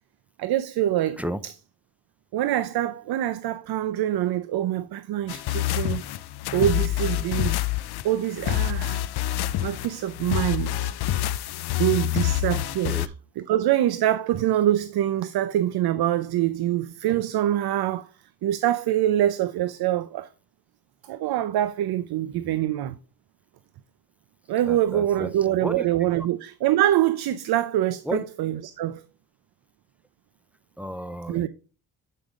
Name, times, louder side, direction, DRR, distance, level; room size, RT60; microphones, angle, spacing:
voice 1, 0.4-1.5 2.3-6.0 6.5-7.6 8.0-9.0 9.6-10.9 11.8-18.1 18.4-20.3 21.1-23.0 24.5-29.0 31.3-31.5, right 12 dB, 75° right, 0.6 m, -25 dB
sound 1, 5.3-13.1, left 13 dB, 80° left, 0.5 m, -27 dB
voice 2, 24.7-25.3 25.6-25.8 28.1-28.2 30.8-31.5, equal, 5° right, 0.4 m, -32 dB
7.8 x 5.0 x 3.6 m
cardioid pair, 125°, 38 cm